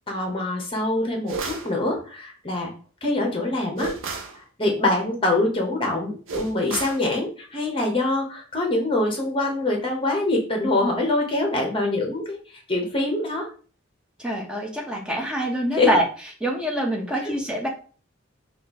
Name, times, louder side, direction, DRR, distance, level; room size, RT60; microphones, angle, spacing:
voice 1, 0.1-2.7 3.0-3.9 4.6-13.5 15.7-16.0 17.2-17.3, left 2 dB, 25° left, 1 dB, 0.9 m, -24 dB
sound 1, 1.3-1.7 3.8-4.4 6.3-7.1, right 4 dB, 75° right, 0.6 m, -31 dB
voice 2, 14.2-16.0 16.4-17.7, right 1 dB, 5° right, -1 dB, 0.7 m, -25 dB
3.0 x 2.5 x 3.8 m, 0.39 s
head